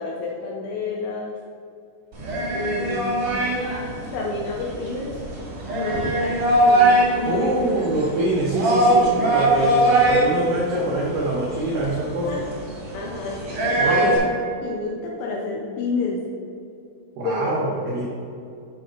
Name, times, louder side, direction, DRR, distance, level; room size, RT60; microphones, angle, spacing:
voice 1, 0.0-1.3 2.5-3.3 4.1-5.2 5.7-7.6 8.9-9.1 12.3-12.4 12.9-13.4 13.8-14.1 14.6-16.2 17.2-17.8, left 3 dB, 80° left, -2 dB, 2.5 m, -29 dB
sound 1, 2.1-14.2, right 1 dB, 65° right, 1.4 m, -22 dB
voice 2, 7.3-12.3 13.8-14.2 17.2-18.0, right 1 dB, 85° right, -4 dB, 1.9 m, -25 dB
7.6 x 5.6 x 3.9 m, 2.5 s
omnidirectional pair, 5.5 m